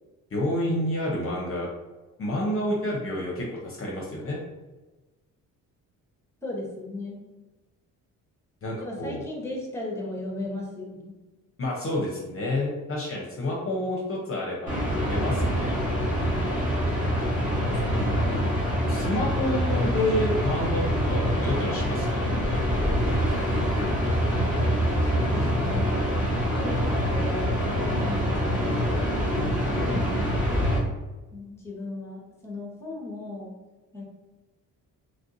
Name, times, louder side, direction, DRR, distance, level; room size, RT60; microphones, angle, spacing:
voice 1, 0.3-1.7 2.2-4.4 8.6-9.2 11.6-15.7 18.9-22.2 22.7-22.9 29.8-30.3, left 1 dB, 40° left, -2 dB, 0.7 m, -29 dB
voice 2, 6.4-7.2 8.8-11.2 17.5-18.5 25.0-28.9 29.7-30.4 31.3-33.6 33.9-34.1, left 2 dB, 10° left, -1 dB, 0.9 m, -37 dB
sound 1, 14.7-30.8, equal, 25° right, 1.3 m, -25 dB
3.2 x 2.5 x 2.6 m, 1.1 s
cardioid pair, 85°, 34 cm